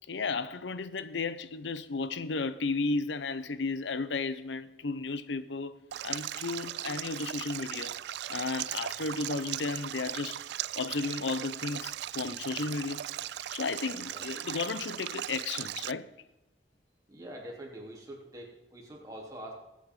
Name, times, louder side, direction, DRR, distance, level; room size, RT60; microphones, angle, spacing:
voice 1, 0.1-7.9 8.3-10.4 10.8-13.1 13.5-16.1, left 3 dB, 90° left, 0.7 m, -34 dB
Stream, 5.9-15.9, right 12 dB, 70° right, 0.3 m, -38 dB
voice 2, 17.1-19.5, right 1 dB, 20° right, 3.1 m, -44 dB
21.5 x 8.6 x 3.8 m
head